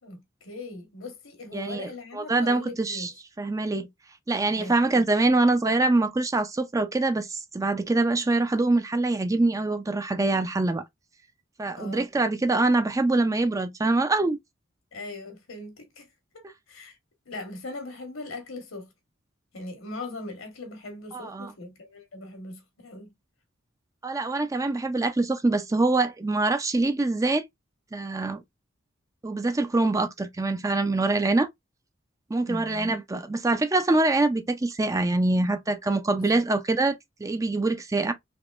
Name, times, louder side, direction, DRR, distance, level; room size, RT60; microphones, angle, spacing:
voice 1, 0.0-3.1 4.5-5.1 11.8-12.1 14.9-16.1 16.3-17.0 17.3-18.9 19.5-23.1 32.4-32.9 36.1-36.4, left 2 dB, 75° left, 1.3 m, -40 dB
voice 2, 1.5-3.1 3.4-3.9 4.3-10.8 11.6-14.4 21.1-21.5 24.0-27.4 27.9-28.4 29.2-31.5 32.3-38.1, right 2 dB, 15° right, 0.4 m, -24 dB
3.5 x 2.9 x 2.4 m
head